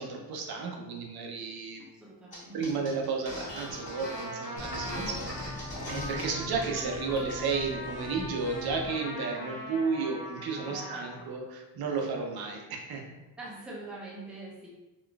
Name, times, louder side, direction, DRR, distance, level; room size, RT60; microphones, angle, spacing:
voice 1, 0.0-1.8 2.5-13.0, right 4 dB, 60° right, 2 dB, 0.6 m, -33 dB
voice 2, 1.9-2.8 10.6-11.1 12.0-12.1 13.4-14.7, right 2 dB, ahead, -5 dB, 0.5 m, -44 dB
sound 1, 2.3-2.4 2.6-6.2 6.6-6.8 7.1-7.6, left 1 dB, 15° left, 1.4 m, -40 dB
Trumpet, 3.5-11.4, left 1 dB, 70° left, 1.0 m, -42 dB
sound 2, 4.6-9.0, left 1 dB, 50° left, 0.5 m, -42 dB
3.8 x 2.4 x 2.3 m, 1.1 s
wide cardioid pair, 170°, 42 cm